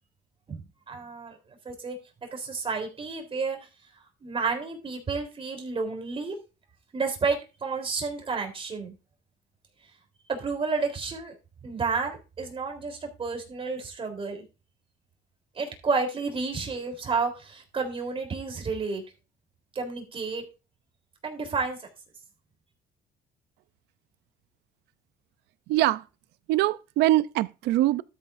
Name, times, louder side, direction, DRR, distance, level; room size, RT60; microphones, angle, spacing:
voice 1, 0.9-1.4 1.7-3.6 4.2-6.4 6.9-8.9 10.3-11.3 11.6-14.5 15.6-19.0 19.8-20.4 21.2-21.9, right 4 dB, 35° right, 3.6 m, -31 dB
voice 2, 25.7-26.0 26.5-28.0, right 15 dB, 85° right, 0.5 m, -23 dB
13.0 x 7.7 x 2.6 m
cardioid pair, 110°, 17 cm